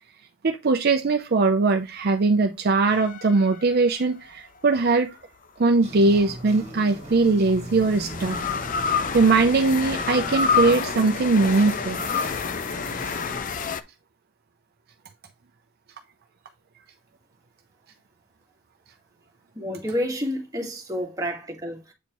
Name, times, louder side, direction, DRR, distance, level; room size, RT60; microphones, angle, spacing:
voice 1, 0.4-5.2 5.6-8.4 8.9-12.0, right 3 dB, 50° right, 0.5 m, -21 dB
sound 1, 2.9-4.4 6.3-13.8, left 6 dB, 40° left, 0.5 m, -29 dB
sound 2, 5.8-13.4, right 1 dB, 35° right, 1.7 m, -39 dB
voice 2, 19.6-21.9, equal, 15° right, 1.7 m, -29 dB
8.1 x 4.4 x 3.0 m
head